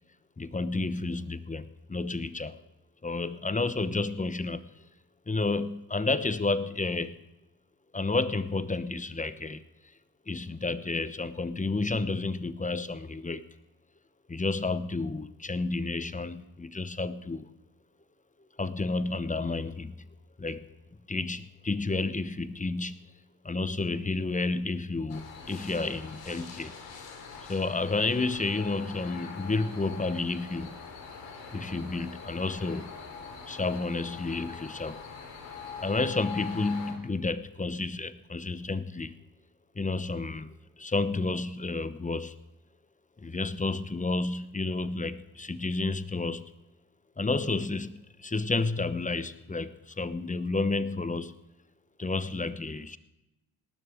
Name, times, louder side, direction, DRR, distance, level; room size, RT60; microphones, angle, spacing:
voice 1, 0.4-2.6 3.0-4.7 5.3-7.2 7.9-9.6 10.3-13.4 14.3-17.5 18.6-20.0 20.4-20.7 21.1-23.1 23.4-26.7 27.5-30.8 31.5-32.9 33.5-35.0 35.8-39.2 39.7-42.4 43.2-46.5 47.2-51.4 52.0-53.0, left 3 dB, 15° left, 14 dB, 0.9 m, -31 dB
sound 1, 25.1-36.9, left 5 dB, 85° left, 3.0 m, -43 dB
18.5 x 12.5 x 3.6 m, 0.95 s
supercardioid pair, 50°, 44 cm